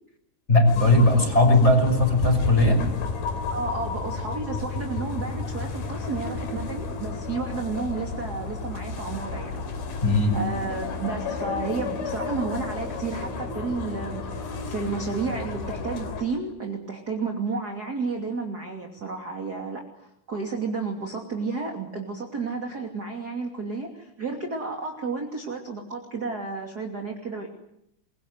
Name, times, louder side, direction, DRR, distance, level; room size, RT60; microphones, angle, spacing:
voice 1, 0.5-2.8 10.0-10.4, left 1 dB, 15° left, 5 dB, 5.6 m, -18 dB
sound 1, 0.7-16.2, left 4 dB, 50° left, 4.5 m, -32 dB
voice 2, 3.5-9.6 9.9-10.0 10.3-27.5, right 4 dB, 30° right, 2 dB, 2.1 m, -32 dB
27.0 x 23.0 x 8.0 m, 0.79 s
omnidirectional pair, 5.9 m